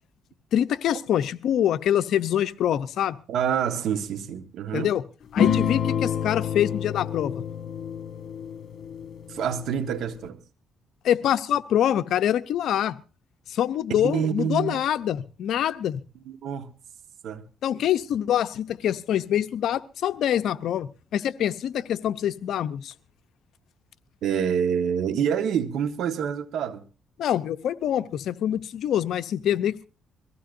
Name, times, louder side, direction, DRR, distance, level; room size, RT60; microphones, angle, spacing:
voice 1, 0.5-3.2 4.7-5.0 5.3-7.4 11.0-13.0 13.5-16.0 17.6-22.9 27.2-29.9, left 10 dB, 75° left, 0.7 m, -25 dB
voice 2, 3.3-4.9 9.3-10.4 13.9-14.8 16.2-16.7 17.2-17.5 24.2-26.8, right 8 dB, 75° right, 1.4 m, -27 dB
sound 1, 5.4-10.3, left 8 dB, 60° left, 2.2 m, -28 dB
23.0 x 15.5 x 2.6 m
cardioid pair, 90°, 0 cm